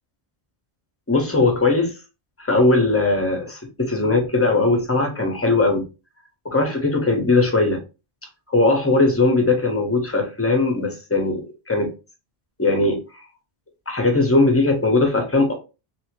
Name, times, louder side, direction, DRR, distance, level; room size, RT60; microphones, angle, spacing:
voice 1, 1.1-1.9 2.4-5.8 6.4-7.8 8.5-11.9 12.6-13.2 13.9-15.5, left 2 dB, 15° left, 2 dB, 0.8 m, -19 dB
2.8 x 2.8 x 2.9 m, 0.30 s
omnidirectional pair, 1.0 m